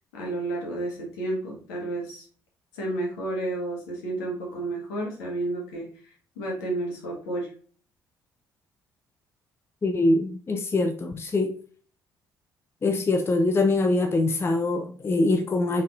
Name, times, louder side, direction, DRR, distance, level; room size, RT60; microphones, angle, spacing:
voice 1, 0.1-2.2 2.7-7.5, right 2 dB, 70° left, 1.5 m, -31 dB
voice 2, 9.8-11.6 12.8-15.8, left 2 dB, 25° left, 0.5 m, -23 dB
5.2 x 4.0 x 2.5 m
figure-of-eight pair, 45°, 10 cm